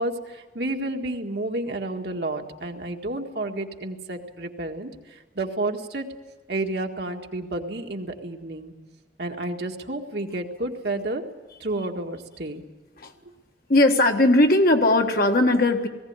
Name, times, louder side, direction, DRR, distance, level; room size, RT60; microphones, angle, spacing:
voice 1, 0.0-6.1 6.5-8.7 9.2-11.2 11.6-12.6, right 2 dB, 60° right, 3 dB, 1.8 m, -30 dB
voice 2, 13.7-15.9, left 2 dB, 50° left, 4 dB, 1.6 m, -18 dB
19.0 x 17.0 x 9.6 m, 1.2 s
head